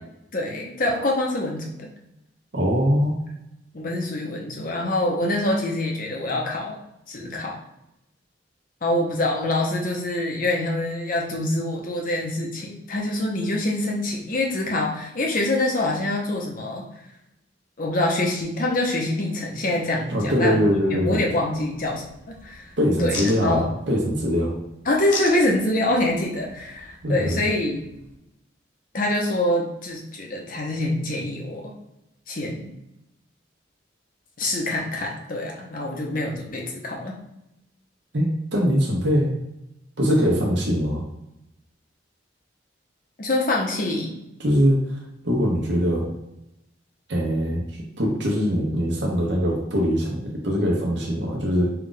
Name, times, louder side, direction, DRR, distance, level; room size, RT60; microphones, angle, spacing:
voice 1, 0.3-1.9 3.7-6.8 7.1-7.6 8.8-16.9 17.8-20.6 21.0-22.7 23.0-23.7 24.9-27.8 28.9-31.7 32.3-32.7 34.4-37.2 43.2-44.2, left 1 dB, 45° left, 0 dB, 0.8 m, -25 dB
voice 2, 2.5-3.2 20.1-21.2 22.8-24.5 27.0-27.4 38.1-39.3 40.0-41.0 44.4-46.1 47.1-47.7 48.0-51.7, equal, 70° right, -2 dB, 1.0 m, -22 dB
sound 1, 20.8-28.2, left 3 dB, 90° left, 1.0 m, -40 dB
4.6 x 2.4 x 3.9 m, 0.85 s
head